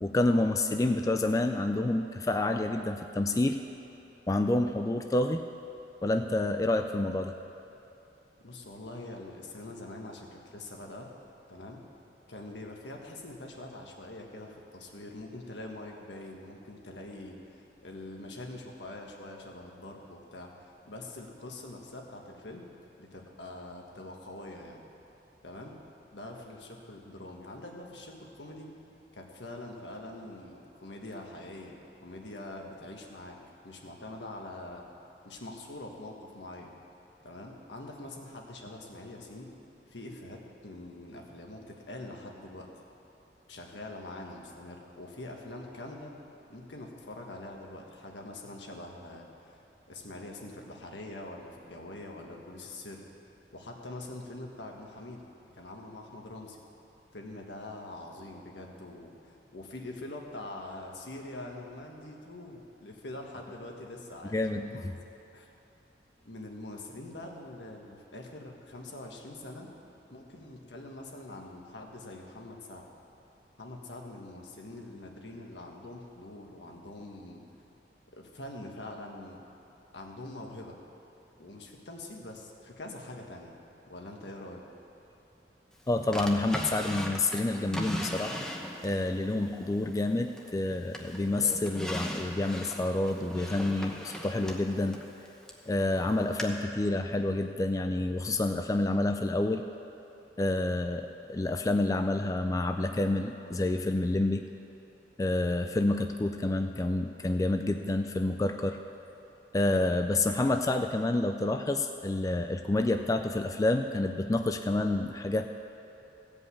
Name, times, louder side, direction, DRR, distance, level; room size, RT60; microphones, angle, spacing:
voice 1, 0.0-3.6 4.3-5.4 6.0-7.4 64.3-64.9 85.9-88.4 88.8-95.0 95.7-99.6 100.4-104.5 105.2-108.8 109.5-115.6, left 2 dB, 20° left, 6 dB, 0.3 m, -28 dB
voice 2, 8.4-11.1 11.5-11.8 12.3-20.5 20.8-22.7 23.0-24.8 25.4-25.8 26.1-28.7 29.1-31.8 32.0-33.4 33.6-34.9 35.2-36.7 37.2-39.5 39.9-42.7 43.5-46.1 46.5-49.3 49.9-53.0 53.5-55.3 55.5-56.6 57.1-64.8 65.3-65.5 66.2-69.7 70.1-72.9 73.6-77.4 78.2-79.4 79.9-80.8 81.4-83.5 83.9-84.6, left 2 dB, 80° left, 0 dB, 1.5 m, -44 dB
Drawer open or close, 86.1-89.0 89.5-90.6 90.9-95.7 96.4-96.5, equal, 5° left, 1.0 m, -38 dB
16.0 x 5.4 x 8.4 m, 2.9 s
head